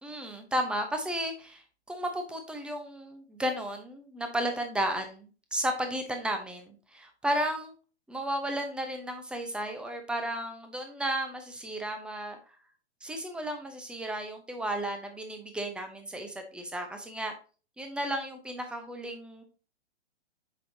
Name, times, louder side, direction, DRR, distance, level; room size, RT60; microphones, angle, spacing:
voice 1, 0.0-7.7 8.1-12.4 13.0-17.3 17.8-19.4, right 1 dB, 5° right, 5 dB, 0.8 m, -33 dB
7.5 x 5.7 x 2.8 m, 0.36 s
hypercardioid pair, 125°, 35 cm